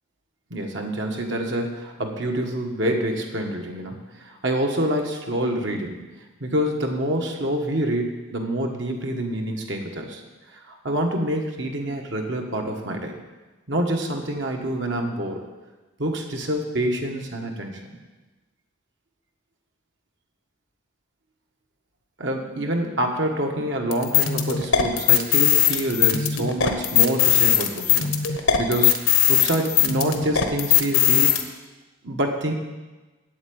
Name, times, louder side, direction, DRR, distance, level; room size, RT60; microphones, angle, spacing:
voice 1, 0.5-6.0 6.4-10.2 10.5-13.1 13.7-15.4 16.0-18.0 22.2-31.4 32.0-32.5, right 1 dB, 60° right, 2 dB, 1.6 m, -27 dB
sound 1, 23.9-31.4, left 10 dB, 80° left, 1.2 m, -19 dB
8.5 x 8.0 x 8.8 m, 1.2 s
head